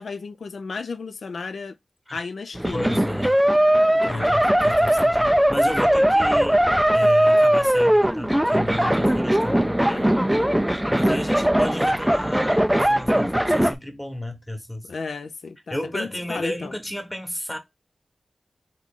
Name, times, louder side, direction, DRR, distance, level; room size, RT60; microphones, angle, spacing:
voice 1, 0.0-1.8 2.1-3.0 3.9-4.4 9.9-10.4 14.8-16.7, left 4 dB, 80° left, 0.5 m, -34 dB
sound 1, 2.5-13.7, right 1 dB, 5° right, 0.3 m, -19 dB
voice 2, 2.7-3.4 4.0-6.7 6.9-10.1 10.9-14.9 15.7-17.6, left 1 dB, 10° left, 1.1 m, -33 dB
3.6 x 3.2 x 3.7 m
wide cardioid pair, 85°, 0 cm